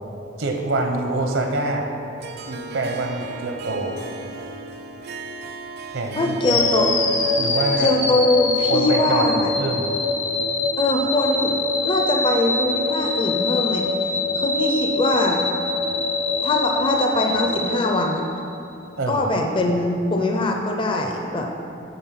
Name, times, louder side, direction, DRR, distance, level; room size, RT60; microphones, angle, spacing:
voice 1, 0.4-1.9 2.4-4.0 5.9-6.6 7.4-7.9 8.7-9.9 19.0-19.3, right 2 dB, 80° right, 3 dB, 0.8 m, -25 dB
Harp, 2.2-10.6, right 4 dB, 55° right, 0.5 m, -38 dB
voice 2, 6.2-6.9 7.8-9.5 10.8-11.5 11.8-13.9 14.4-15.4 16.4-18.2 19.1-21.5, left 2 dB, 25° left, 2 dB, 0.5 m, -22 dB
sound 1, 6.4-18.5, left 3 dB, 80° left, 1.1 m, -24 dB
9.7 x 4.2 x 5.8 m, 2.7 s
head